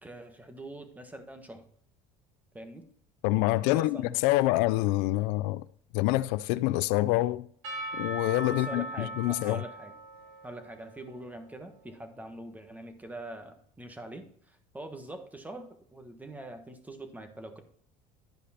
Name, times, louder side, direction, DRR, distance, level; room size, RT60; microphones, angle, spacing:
voice 1, 0.0-1.7 2.5-2.9 3.6-4.2 8.4-9.9 10.4-17.6, right 1 dB, 10° right, 1.4 m, -44 dB
voice 2, 3.2-5.6 5.9-7.5 7.9-9.6, left 18 dB, 80° left, 0.5 m, -26 dB
Percussion / Church bell, 7.6-12.0, right 1 dB, 80° right, 4.4 m, -40 dB
12.0 x 5.1 x 4.3 m
cardioid pair, 125°, 19 cm